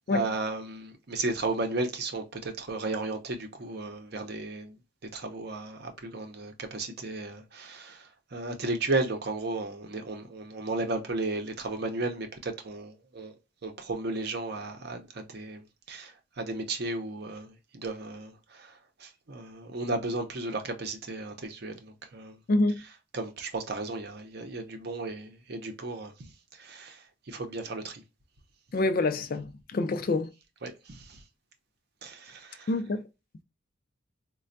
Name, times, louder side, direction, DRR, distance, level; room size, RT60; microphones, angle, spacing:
voice 1, 0.1-4.8 5.1-13.3 13.6-15.6 15.9-18.7 19.0-22.4 23.1-26.1 26.6-28.0 30.6-31.2 32.0-32.7, right 2 dB, 50° right, 0.7 m, -34 dB
voice 2, 22.5-22.8 28.7-30.3 32.7-33.0, left 2 dB, 45° left, 0.4 m, -26 dB
4.2 x 2.2 x 2.5 m
head